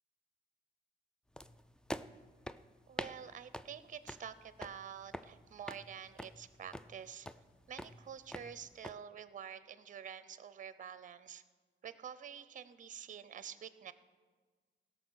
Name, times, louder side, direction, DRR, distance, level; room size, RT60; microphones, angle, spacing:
sound 1, 1.4-8.9, equal, 5° left, 0.4 m, -48 dB
voice 1, 2.9-7.3 7.7-11.4 11.8-13.9, right 8 dB, 40° right, 14 dB, 0.7 m, -48 dB
16.5 x 6.5 x 6.4 m, 1.4 s
cardioid pair, 90°, 20 cm